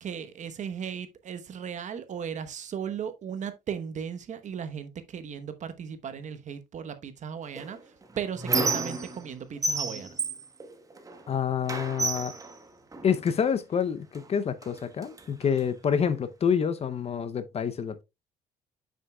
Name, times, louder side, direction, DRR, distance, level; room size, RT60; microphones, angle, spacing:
voice 1, 0.0-10.2, right 7 dB, 45° right, 1.0 m, -36 dB
Squeak, 7.6-9.3 9.6-11.3 11.7-13.4 14.1-14.3 14.6-15.6, right 3 dB, 20° right, 1.1 m, -31 dB
voice 2, 11.3-12.3 13.0-18.0, left 7 dB, 40° left, 0.6 m, -27 dB
7.0 x 6.4 x 2.2 m
cardioid pair, 110°, 17 cm